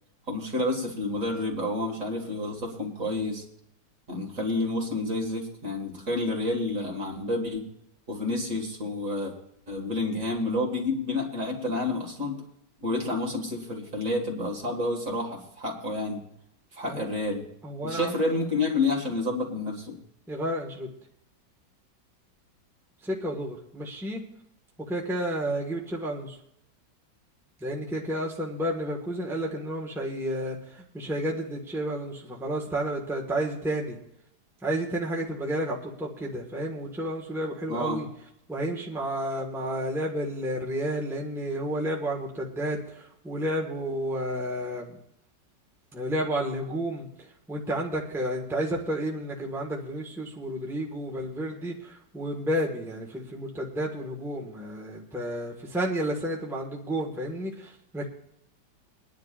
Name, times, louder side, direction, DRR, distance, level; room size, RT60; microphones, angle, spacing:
voice 1, 0.3-3.4 4.1-7.7 8.1-9.3 9.7-12.4 12.8-16.2 16.7-17.5 17.8-20.0 37.7-38.0, left 2 dB, 45° right, 1 dB, 2.5 m, -29 dB
voice 2, 17.6-18.1 20.3-20.9 23.0-24.2 24.9-26.4 27.6-34.0 34.6-38.0 38.5-45.0 45.9-47.1 47.5-58.1, right 1 dB, ahead, -2 dB, 1.5 m, -31 dB
23.0 x 10.5 x 2.5 m, 0.76 s
omnidirectional pair, 1.9 m